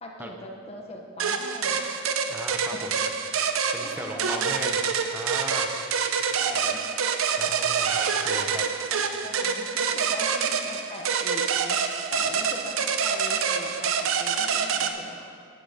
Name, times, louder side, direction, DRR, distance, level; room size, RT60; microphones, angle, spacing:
voice 1, 0.0-2.0 2.7-2.9 3.8-4.6 5.9-6.8 8.3-11.8 12.1-15.3, left 1 dB, 30° left, 1 dB, 0.9 m, -41 dB
sound 1, 1.2-14.9, right 6 dB, 80° right, 0.6 m, -26 dB
voice 2, 2.3-2.9 3.7-4.8 5.1-5.7 7.4-8.6, right 1 dB, 10° right, 3 dB, 0.7 m, -37 dB
11.5 x 9.4 x 3.6 m, 2.1 s
head